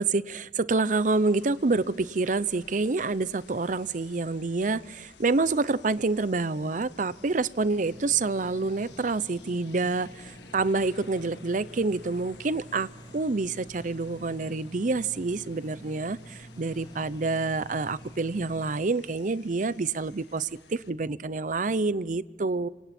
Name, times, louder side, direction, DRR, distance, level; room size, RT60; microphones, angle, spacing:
voice 1, 0.0-22.7, right 3 dB, 45° right, 17 dB, 0.6 m, -27 dB
sound 1, 0.9-20.9, left 4 dB, 85° left, 1.9 m, -54 dB
sound 2, 7.6-18.7, right 1 dB, 25° left, 4.7 m, -48 dB
26.5 x 26.5 x 4.4 m, 1.2 s
head